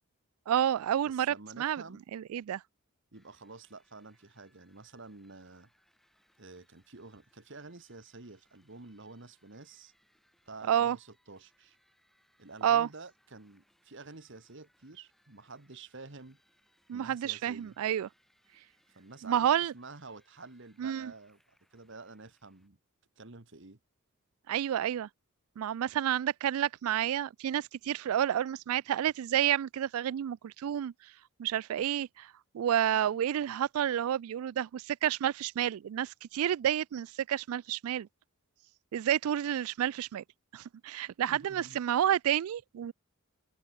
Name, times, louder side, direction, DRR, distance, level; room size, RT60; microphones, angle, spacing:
voice 1, 0.5-1.8 2.1-2.6 10.7-11.0 12.6-12.9 16.9-18.1 19.2-19.7 20.8-21.1 24.5-25.1 25.6-30.9 31.4-38.1 38.9-40.2 40.5-42.9, right 10 dB, 80° right, 0.3 m, -30 dB
voice 2, 1.0-2.0 3.1-5.7 6.4-9.9 10.5-11.8 12.4-16.4 16.9-17.8 18.9-19.5 19.7-22.8 23.2-23.8 41.3-41.8, right 3 dB, 55° right, 1.5 m, -50 dB
sound 1, 3.1-22.7, equal, ahead, 5.8 m, -72 dB
open air
head